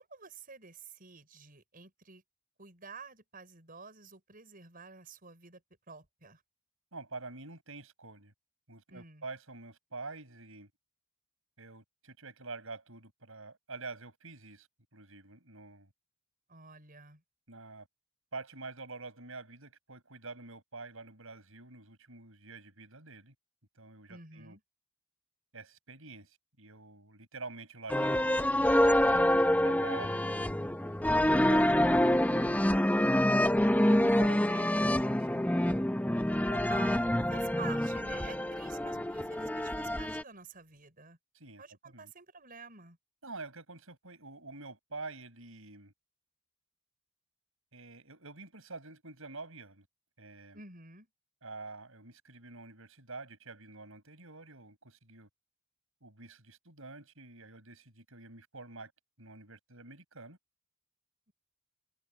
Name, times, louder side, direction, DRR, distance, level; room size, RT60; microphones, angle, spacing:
voice 1, 0.0-2.2 2.6-5.6 5.9-6.4 8.9-9.2 16.5-17.2 24.1-24.6 31.9-32.6 36.7-41.2 41.6-43.0 50.5-51.1, right 5 dB, 40° right, 6.2 m, -50 dB
voice 2, 6.9-8.3 8.7-10.7 11.6-15.9 17.5-17.9 18.3-23.3 23.7-24.6 25.5-30.4 31.3-32.1 33.2-35.5 36.5-36.8 41.3-42.1 43.2-45.9 47.7-49.9 50.2-50.6 51.4-55.3 56.0-58.9 59.2-60.4, right 3 dB, 70° right, 7.6 m, -47 dB
sound 1, 27.9-40.2, left 1 dB, 5° left, 0.8 m, -27 dB
head